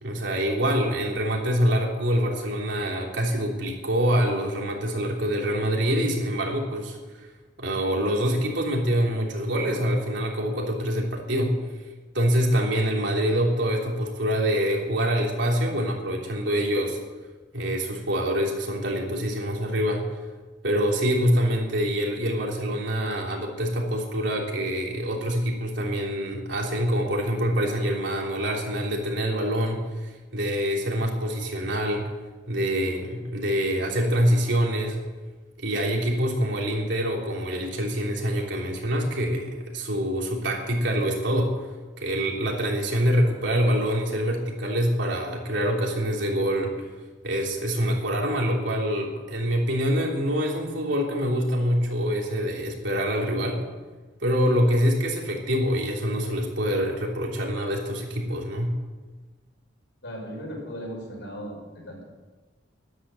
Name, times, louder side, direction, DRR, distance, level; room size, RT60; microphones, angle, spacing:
voice 1, 0.0-7.3 7.6-11.6 12.1-17.0 17.5-20.0 20.6-32.1 32.5-35.0 35.6-41.5 42.0-46.7 47.2-53.6 54.2-58.7, equal, 70° right, 0 dB, 3.4 m, -25 dB
voice 2, 60.0-62.0, equal, 70° left, 0 dB, 5.8 m, -37 dB
13.0 x 12.0 x 7.7 m, 1.3 s
head